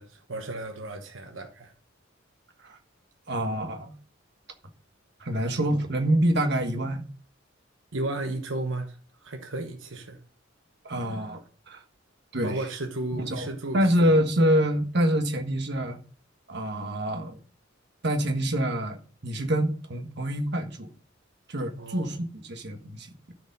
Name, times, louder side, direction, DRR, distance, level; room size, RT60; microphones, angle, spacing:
voice 1, 0.0-1.7 7.9-10.2 12.4-14.2 21.8-22.2, right 2 dB, 80° right, 1.1 m, -34 dB
voice 2, 3.3-3.9 5.2-7.0 10.8-11.8 12.3-12.5 13.3-13.5 13.7-16.0 16.5-17.4 18.0-20.9 21.5-22.2 22.5-23.3, right 1 dB, 60° right, 1.5 m, -26 dB
12.5 x 5.2 x 5.4 m
head